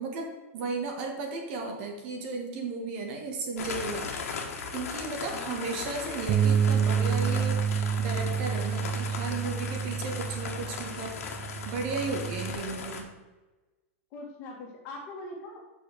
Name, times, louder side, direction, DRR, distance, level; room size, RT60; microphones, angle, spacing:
voice 1, 0.0-4.1 4.7-11.2 11.6-13.1, right 3 dB, 45° right, 2 dB, 1.7 m, -35 dB
sound 1, 3.6-13.0, left 5 dB, 80° left, 1.7 m, -37 dB
voice 2, 5.3-5.8 12.4-13.0 14.1-15.6, left 2 dB, 35° left, -1 dB, 2.2 m, -43 dB
Bass guitar, 6.3-12.5, right 7 dB, 20° right, 0.4 m, -28 dB
6.1 x 5.8 x 6.8 m, 1.2 s
supercardioid pair, 160°, 8 cm